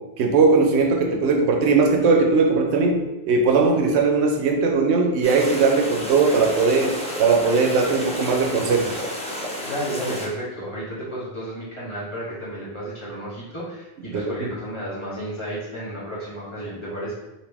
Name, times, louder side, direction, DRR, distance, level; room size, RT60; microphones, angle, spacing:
voice 1, 0.2-6.9 7.2-9.0 14.1-14.5, right 4 dB, 90° right, 3 dB, 0.9 m, -19 dB
sound 1, 5.2-10.3, equal, 10° left, 0.3 m, -31 dB
voice 2, 9.6-17.1, equal, 30° left, -9 dB, 1.3 m, -32 dB
2.9 x 2.9 x 3.3 m, 0.98 s
omnidirectional pair, 1.1 m